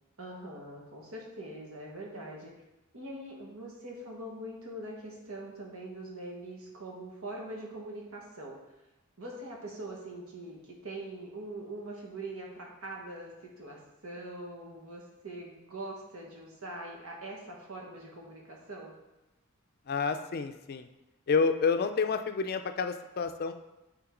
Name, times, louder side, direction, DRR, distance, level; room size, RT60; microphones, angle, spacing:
voice 1, 0.2-2.5 2.9-8.6 9.2-18.9, right 1 dB, 75° right, -1 dB, 1.5 m, -43 dB
voice 2, 19.9-20.9 21.3-23.5, left 5 dB, 45° left, 8 dB, 0.4 m, -29 dB
8.8 x 3.8 x 3.8 m, 1.0 s
head